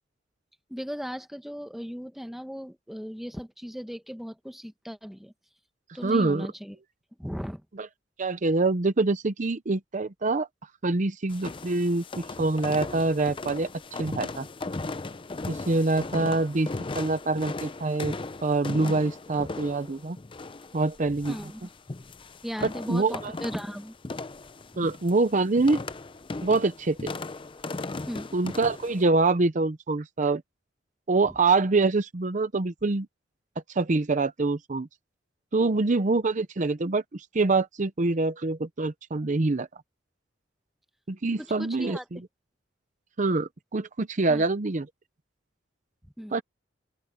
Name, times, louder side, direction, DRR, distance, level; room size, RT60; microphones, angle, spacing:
voice 1, 0.7-5.3 5.9-6.8 7.2-7.6 21.3-21.6 22.4-23.9 24.7-24.9 28.1-28.3 31.2-31.3 41.4-42.0 44.3-44.4 46.2-46.4, equal, ahead, 1.1 m, -37 dB
voice 2, 6.0-6.5 7.8-7.9 8.2-10.5 10.8-13.7 14.0-14.5 15.5-16.7 16.9-18.1 18.4-20.2 20.7-21.4 22.9-23.3 24.8-25.8 26.4-27.1 28.3-30.4 31.1-33.1 33.7-34.9 35.5-39.7 41.1-42.2 43.2-44.9 46.3-46.4, right 3 dB, 40° right, 0.7 m, -25 dB
sound 1, 11.3-29.0, left 3 dB, 25° left, 0.6 m, -37 dB
open air
head